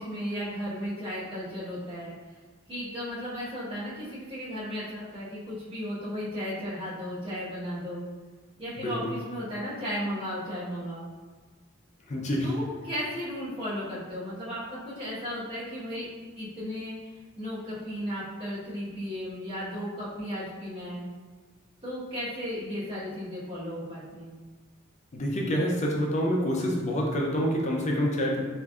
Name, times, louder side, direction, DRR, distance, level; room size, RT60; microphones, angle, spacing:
voice 1, 0.0-2.1 2.7-8.0 8.6-11.0 12.4-16.1 16.3-21.1 21.8-24.3, equal, 25° right, -11 dB, 1.2 m, -35 dB
voice 2, 8.8-9.1 12.1-12.5 25.1-28.4, equal, 35° left, -1 dB, 0.5 m, -27 dB
3.3 x 2.5 x 2.4 m, 1.4 s
head